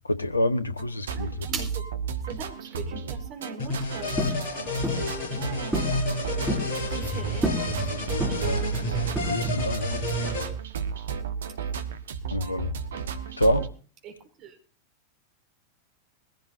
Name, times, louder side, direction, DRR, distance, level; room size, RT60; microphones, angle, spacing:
voice 1, 0.1-1.3 8.4-8.6 9.3-9.9 12.3-12.7 13.4-13.6, left 1 dB, 80° left, 1.1 m, -26 dB
sound 1, 0.8-13.7, right 7 dB, 65° right, 1.3 m, -33 dB
voice 2, 1.1-1.8 2.3-6.0 6.8-7.9 8.2-9.0 12.4-12.5 14.0-14.6, right 5 dB, 35° right, 4.2 m, -41 dB
sound 2, 3.6-10.4, left 1 dB, 50° left, 7.9 m, -30 dB
sound 3, 4.2-4.4 4.8-5.1 5.7-6.0 6.3-6.7 7.4-7.7 8.2-8.6 9.2-9.6, equal, 5° right, 3.0 m, -29 dB
21.5 x 16.0 x 2.7 m
figure-of-eight pair, 90°, 0 cm